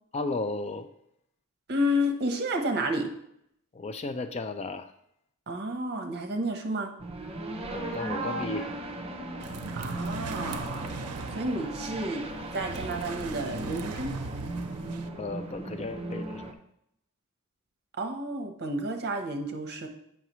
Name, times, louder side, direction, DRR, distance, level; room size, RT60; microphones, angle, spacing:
voice 1, 0.1-0.9 3.7-4.9 7.7-8.7 15.2-16.5, left 3 dB, 30° left, 9 dB, 0.4 m, -34 dB
voice 2, 1.7-3.1 5.5-6.9 9.7-11.0 11.3-12.3 12.5-14.1 18.0-19.9, equal, 50° right, 4 dB, 0.9 m, -31 dB
sound 1, 7.0-16.5, right 1 dB, 25° right, 0.7 m, -37 dB
sound 2, 9.4-15.1, right 5 dB, 90° right, 0.5 m, -40 dB
8.2 x 5.7 x 3.0 m, 0.75 s
head